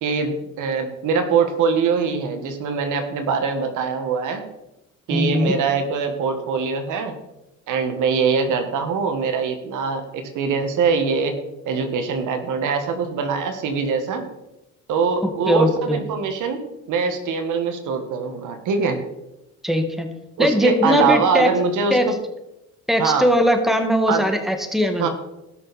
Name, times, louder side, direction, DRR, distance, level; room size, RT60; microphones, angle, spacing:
voice 1, 0.0-4.5 5.1-7.1 7.7-11.4 11.6-14.3 14.9-19.0 20.4-22.0 23.0-23.3 24.1-24.3 25.0-25.1, right 5 dB, 85° right, 7 dB, 1.6 m, -23 dB
voice 2, 5.1-5.5 15.2-16.0 19.6-20.1 20.4-21.5 21.9-22.1 22.9-25.1, equal, ahead, 5 dB, 1.9 m, -20 dB
18.5 x 6.4 x 4.3 m, 0.93 s
cardioid pair, 90°, 30 cm